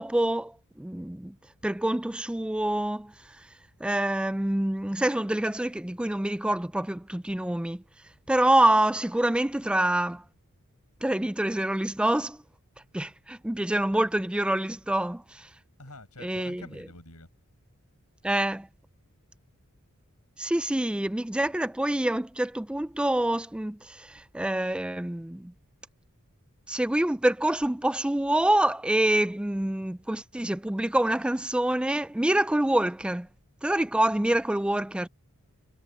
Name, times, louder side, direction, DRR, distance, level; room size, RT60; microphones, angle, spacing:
voice 1, 0.0-1.3 1.6-3.5 3.8-7.8 8.3-10.2 11.0-12.4 12.9-15.5 16.2-16.6 18.2-18.7 20.4-25.5 26.7-33.3 33.6-35.1, right 1 dB, 5° right, 0.3 m, -26 dB
voice 2, 15.8-17.3, left 2 dB, 85° left, 7.5 m, -47 dB
head